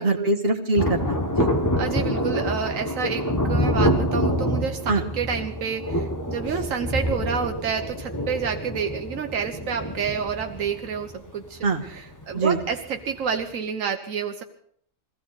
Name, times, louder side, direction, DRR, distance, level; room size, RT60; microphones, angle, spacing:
voice 1, 0.0-1.5 4.9-5.0 11.6-11.8 12.3-12.6, right 2 dB, 45° right, 3 dB, 1.8 m, -23 dB
Thunder, 0.8-12.8 13.0-13.1, equal, 15° left, 1.1 m, -26 dB
voice 2, 1.8-14.4, right 6 dB, 80° right, 4 dB, 1.3 m, -29 dB
22.5 x 15.5 x 4.1 m, 0.64 s
omnidirectional pair, 1.4 m